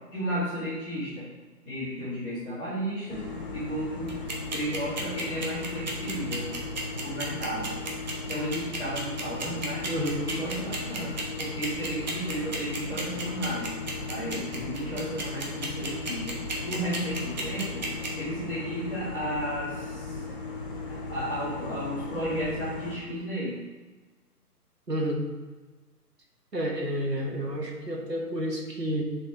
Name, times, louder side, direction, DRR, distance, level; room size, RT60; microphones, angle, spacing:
voice 1, 0.1-1.3 1.6-3.2 3.5-4.1 4.5-6.5 7.0-7.8 8.3-9.8 10.2-13.7 14.1-16.4 16.6-17.8 18.1-20.2 21.1-23.6, equal, ahead, -28 dB, 0.7 m, -33 dB
sound 1, 3.1-23.0, left 3 dB, 35° left, 0.9 m, -37 dB
sound 2, 4.1-18.1, right 3 dB, 30° right, 1.0 m, -33 dB
voice 2, 9.9-10.2 24.9-25.2 26.5-29.0, equal, 85° right, -1 dB, 1.7 m, -30 dB
6.8 x 4.2 x 5.1 m, 1.3 s
figure-of-eight pair, 140°, 48 cm